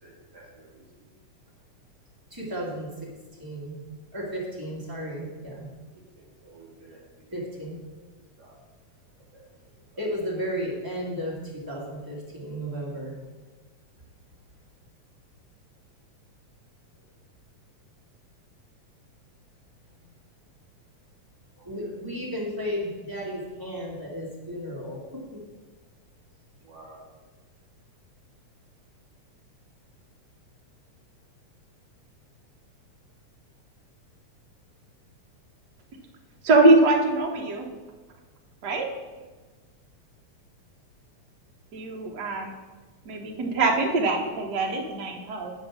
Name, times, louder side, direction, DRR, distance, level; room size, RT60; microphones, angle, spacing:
voice 1, 0.0-1.1 4.9-5.1 5.4-5.6 5.9-7.8 8.4-8.6 9.2-9.4 9.8-10.1 16.9-17.1 21.6-22.0 26.6-27.2, right 2 dB, 35° right, -4 dB, 2.7 m, -53 dB
voice 2, 2.3-3.1 3.4-3.8 4.1-5.7 7.3-7.8 10.0-13.2 20.0-20.1 21.6-25.0 25.3-25.4, equal, 10° right, -4 dB, 1.2 m, -34 dB
voice 3, 36.4-37.7 38.6-38.9 41.7-42.5 43.0-45.5, right 2 dB, 65° right, 1 dB, 1.0 m, -22 dB
9.2 x 5.2 x 6.0 m, 1.3 s
omnidirectional pair, 3.4 m